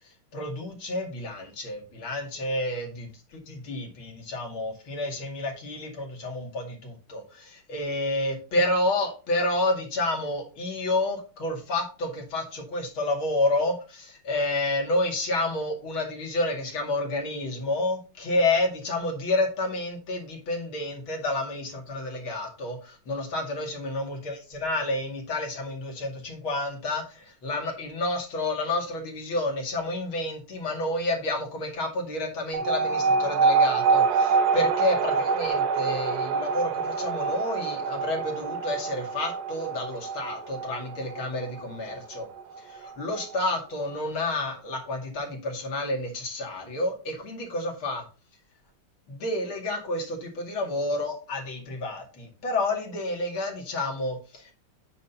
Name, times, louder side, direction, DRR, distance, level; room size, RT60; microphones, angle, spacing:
voice 1, 0.3-42.3 42.6-48.0 49.1-54.5, left 2 dB, 70° left, 1 dB, 3.0 m, -30 dB
sound 1, 32.5-43.5, right 5 dB, 70° right, 1.0 m, -26 dB
9.3 x 4.3 x 5.4 m, 0.33 s
omnidirectional pair, 2.3 m